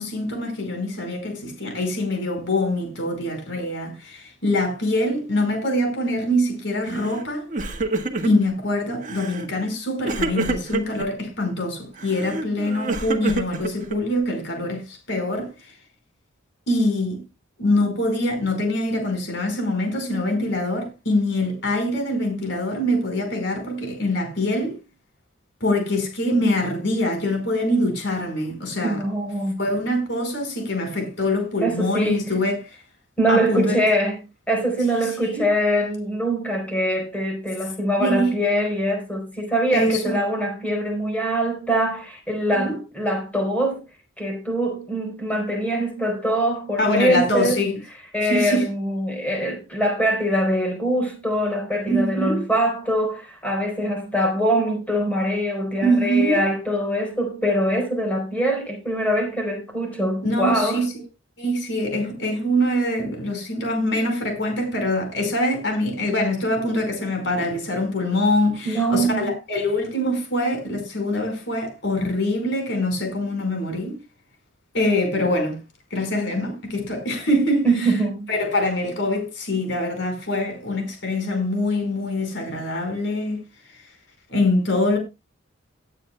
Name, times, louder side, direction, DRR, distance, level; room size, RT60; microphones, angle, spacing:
voice 1, 0.0-7.4 8.2-15.5 16.7-17.2 17.6-24.8 25.6-29.0 29.6-32.8 33.3-33.8 35.3-35.4 38.0-38.3 39.7-40.2 42.5-42.8 46.8-47.8 48.2-48.7 51.9-52.5 55.8-56.4 60.2-60.9 61.4-74.0 74.7-75.6 75.9-77.9 78.3-83.4 84.3-85.0, left 1 dB, 65° left, 4.8 m, -24 dB
Crying sobbing, 6.9-7.2 7.5-8.5 9.0-9.5 10.0-11.1 12.0-14.2, right 3 dB, 40° right, 1.5 m, -27 dB
voice 2, 28.8-29.6 31.6-32.3 33.2-34.2 34.5-43.8 44.2-47.6 48.1-60.9 68.6-69.3 77.6-78.3, right 1 dB, 10° left, 4.1 m, -23 dB
19.0 x 9.0 x 2.3 m
head